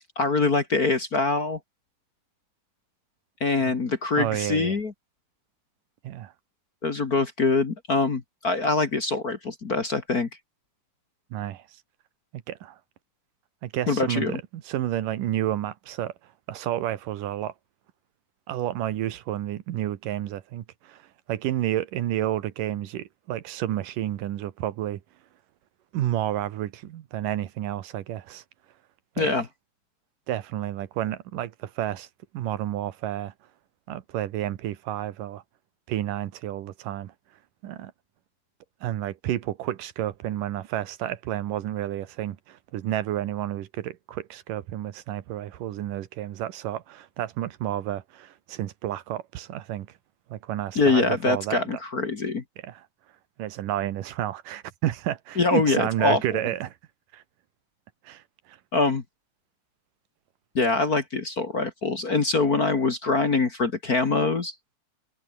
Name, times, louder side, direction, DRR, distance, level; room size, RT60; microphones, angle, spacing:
voice 1, 0.2-1.6 3.4-4.9 6.8-10.3 13.9-14.4 29.2-29.5 50.8-52.4 55.4-56.4 58.7-59.0 60.6-64.5, left 3 dB, 35° left, 1.8 m, -24 dB
voice 2, 4.2-4.8 6.0-6.3 11.3-11.6 12.5-12.8 13.6-16.1 16.5-17.5 18.5-21.0 21.3-25.0 25.9-28.4 29.2-29.3 30.3-32.1 32.3-33.3 33.9-35.4 35.9-37.1 37.6-37.9 38.8-49.9 50.3-51.6 52.6-52.8 53.4-56.7 57.1-57.2 58.0-58.2 58.5-58.6, right 12 dB, 90° right, 3.0 m, -30 dB
omnidirectional pair, 3.7 m